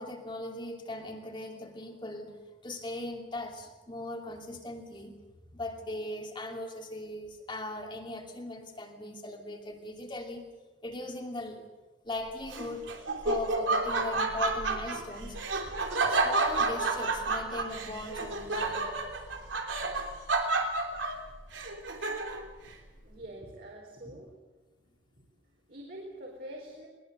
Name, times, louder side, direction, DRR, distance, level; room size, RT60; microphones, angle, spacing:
voice 1, 0.0-5.2 5.5-10.4 10.8-11.6 12.0-12.8 13.2-15.4 16.1-19.4, left 1 dB, 25° left, 2 dB, 2.8 m, -39 dB
Laughter, 12.5-22.5, right 3 dB, 75° right, 3.3 m, -30 dB
voice 2, 22.8-24.4 25.1-26.9, right 1 dB, 50° right, -1 dB, 4.1 m, -46 dB
21.0 x 21.0 x 7.9 m, 1.2 s
head